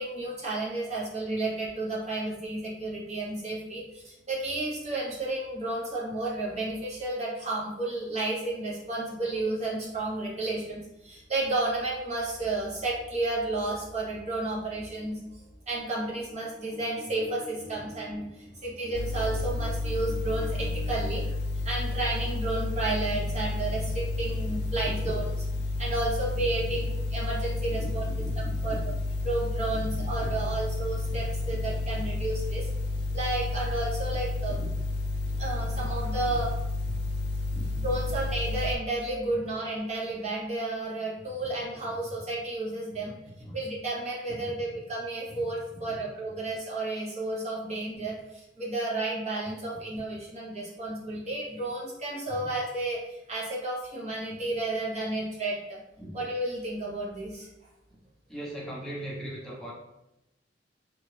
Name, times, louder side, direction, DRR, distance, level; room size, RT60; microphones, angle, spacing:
voice 1, 0.0-28.0 28.4-28.9 29.2-32.7 33.1-34.6 35.4-36.5 37.7-43.2 43.5-55.8 56.1-57.5, right 2 dB, 40° right, -5 dB, 0.9 m, -32 dB
sound 1, 18.9-38.8, left 2 dB, 60° left, 0.3 m, -31 dB
voice 2, 27.8-28.8 29.7-29.8 30.2-30.3 31.1-31.2 34.5-34.7 35.3-35.7 37.5-37.7 43.4-43.6 44.3-44.5 45.9-46.0 52.3-52.4 56.0-56.1 58.3-59.7, right 1 dB, ahead, -6 dB, 0.8 m, -40 dB
2.8 x 2.4 x 3.2 m, 0.91 s
head